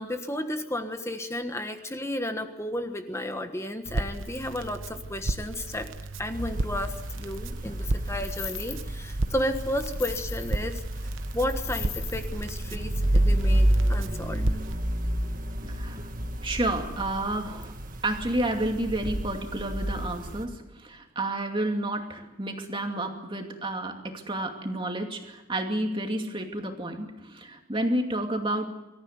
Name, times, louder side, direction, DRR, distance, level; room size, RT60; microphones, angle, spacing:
voice 1, 0.0-5.9 6.2-10.8 11.3-14.4, left 1 dB, 15° left, 7 dB, 1.4 m, -33 dB
Crackle, 3.9-14.8, right 2 dB, 65° right, 1.0 m, -34 dB
sound 1, 6.3-20.4, right 1 dB, 40° right, 1.8 m, -30 dB
sound 2, 7.0-7.4 7.9-9.1 9.5-10.7 10.9-11.0 11.3-12.3, left 11 dB, 80° left, 3.6 m, -39 dB
voice 2, 15.7-16.1 16.4-17.7 18.0-28.7, right 1 dB, 25° right, 3 dB, 2.5 m, -30 dB
25.5 x 14.5 x 9.5 m, 1.0 s
head